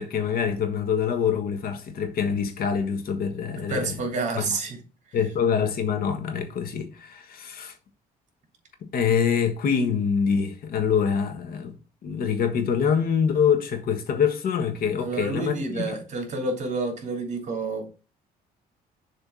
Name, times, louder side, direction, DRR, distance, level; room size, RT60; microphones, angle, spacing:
voice 1, 0.0-3.9 4.4-4.5 5.1-7.7 8.8-11.7 12.0-16.0, left 7 dB, 60° left, 1.5 m, -25 dB
voice 2, 3.5-4.8 15.0-17.9, right 3 dB, 45° right, 2.7 m, -29 dB
7.0 x 3.3 x 6.2 m
cardioid pair, 110°, 17 cm